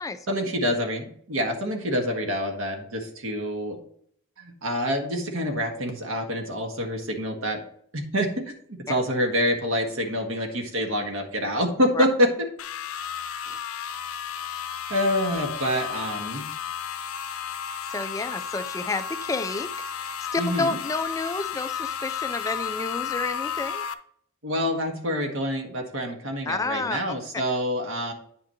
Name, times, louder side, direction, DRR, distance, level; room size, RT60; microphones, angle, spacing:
voice 1, 0.3-3.8 4.4-7.6 7.9-12.5 14.9-16.5 20.4-20.8 24.4-28.1, equal, 75° right, 3 dB, 1.6 m, -27 dB
sound 1, 12.6-23.9, left 8 dB, 85° left, 0.6 m, -33 dB
voice 2, 17.9-19.7 20.0-23.8 26.5-27.0, left 3 dB, 15° left, 11 dB, 0.3 m, -30 dB
9.4 x 5.9 x 3.0 m, 0.64 s
head